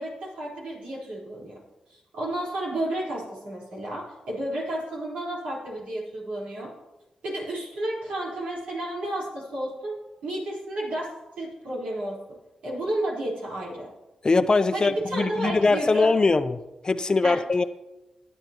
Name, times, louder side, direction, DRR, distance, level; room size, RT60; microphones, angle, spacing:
voice 1, 0.0-1.6 1.9-6.7 7.2-9.9 10.2-11.1 11.4-12.2 12.6-13.9 14.7-16.1 17.2-17.4, right 1 dB, 80° right, -5 dB, 4.4 m, -31 dB
voice 2, 14.2-16.6 16.8-17.6, left 3 dB, 40° left, 12 dB, 0.7 m, -22 dB
18.5 x 9.4 x 3.0 m, 0.99 s
supercardioid pair, 45°, 2 cm